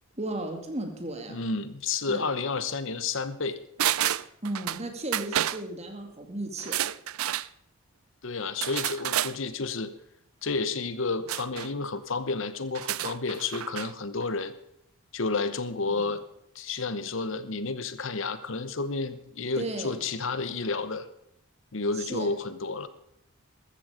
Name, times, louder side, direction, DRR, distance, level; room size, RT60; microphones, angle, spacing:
voice 1, 0.2-1.4 2.1-2.2 4.4-6.8 15.9-16.1 19.6-20.0 21.9-22.3, right 2 dB, 30° right, 4 dB, 2.4 m, -35 dB
voice 2, 1.3-3.6 8.2-9.9 10.4-14.5 15.1-16.2 16.5-21.1 21.7-22.9, left 4 dB, 65° left, 13 dB, 1.0 m, -31 dB
sound 1, 3.8-4.8 5.1-5.6 6.6-7.5 8.6-9.3 11.3-11.7 12.7-13.9 14.2-14.3, right 12 dB, 85° right, 0.5 m, -29 dB
14.5 x 13.5 x 5.1 m, 0.77 s
head